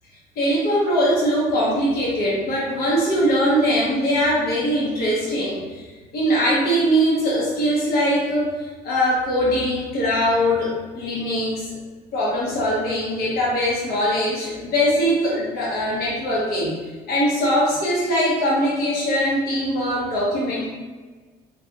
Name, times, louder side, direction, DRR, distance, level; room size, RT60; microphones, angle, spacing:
voice 1, 0.3-11.8 12.1-16.7 17.1-20.7, equal, 65° left, -6 dB, 1.1 m, -21 dB
3.8 x 2.6 x 2.9 m, 1.4 s
cardioid pair, 110°, 17 cm